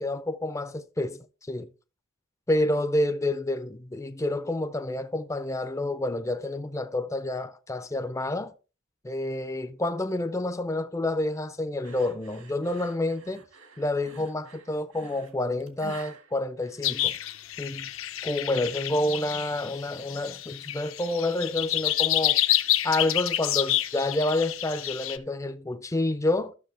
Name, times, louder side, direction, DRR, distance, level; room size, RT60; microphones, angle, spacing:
voice 1, 0.0-1.7 2.5-8.5 9.0-13.4 13.8-17.1 17.6-17.9 18.2-22.4 22.8-26.5, left 1 dB, 15° left, 0.4 m, -29 dB
sound 1, 11.8-17.4, right 4 dB, 75° right, 1.9 m, -49 dB
sound 2, 16.8-25.2, left 13 dB, 65° left, 0.6 m, -28 dB
13.0 x 6.4 x 3.3 m
head